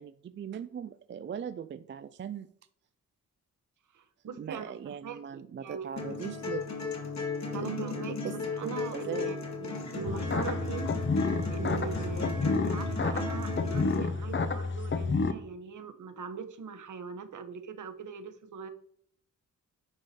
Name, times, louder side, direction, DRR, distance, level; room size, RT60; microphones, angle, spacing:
voice 1, 0.0-2.5 4.4-6.7 7.5-8.4 8.6-9.3, right 8 dB, 35° right, 12 dB, 0.4 m, -40 dB
voice 2, 3.9-5.9 7.5-8.1 8.6-10.9 11.5-18.7, right 6 dB, 65° right, 8 dB, 1.0 m, -41 dB
sound 1, 6.0-13.9, left 2 dB, 55° left, 2.2 m, -35 dB
sound 2, 10.1-15.3, left 4 dB, 35° left, 0.7 m, -30 dB
9.7 x 4.8 x 4.3 m, 0.65 s
cardioid pair, 90°, 33 cm